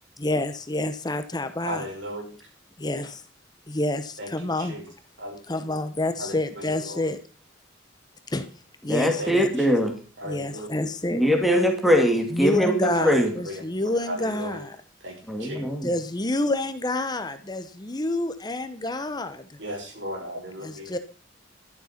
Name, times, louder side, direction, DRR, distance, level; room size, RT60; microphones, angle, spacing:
voice 1, 0.2-1.8 2.8-3.2 3.7-4.8 5.5-7.2 8.3-8.5 8.8-9.5 10.3-11.2 12.3-14.7 15.8-19.4 20.6-21.0, left 2 dB, 20° left, 10 dB, 0.9 m, -28 dB
voice 2, 1.6-2.3 4.2-4.9 5.2-5.4 5.7-5.8 6.2-7.1 9.2-9.7 10.2-10.7 12.9-14.6 15.0-15.6 19.6-20.9, equal, 60° right, 1 dB, 6.2 m, -36 dB
voice 3, 8.9-9.9 11.1-13.3 15.3-15.9, equal, ahead, 3 dB, 2.2 m, -22 dB
12.0 x 11.5 x 5.8 m, 0.38 s
head